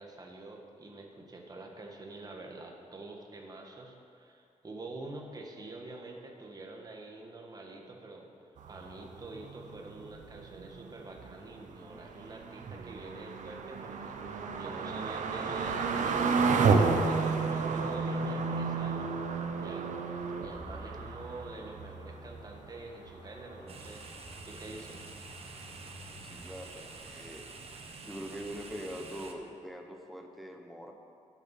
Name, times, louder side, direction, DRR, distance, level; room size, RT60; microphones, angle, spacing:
voice 1, 0.0-8.3 8.7-19.9 20.3-24.0 24.4-25.0, right 2 dB, 30° right, 1 dB, 1.5 m, -46 dB
sound 1, 8.6-22.7 23.1-23.2 23.5-23.6, right 4 dB, 80° right, 0.9 m, -32 dB
sound 2, 20.5-27.3, equal, 45° left, 2.0 m, -51 dB
sound 3, 23.7-29.3, right 4 dB, 50° right, 1.2 m, -47 dB
voice 2, 26.2-27.5 28.1-30.9, equal, ahead, 3 dB, 1.1 m, -43 dB
12.0 x 8.6 x 6.0 m, 2.6 s
wide cardioid pair, 135°, 13 cm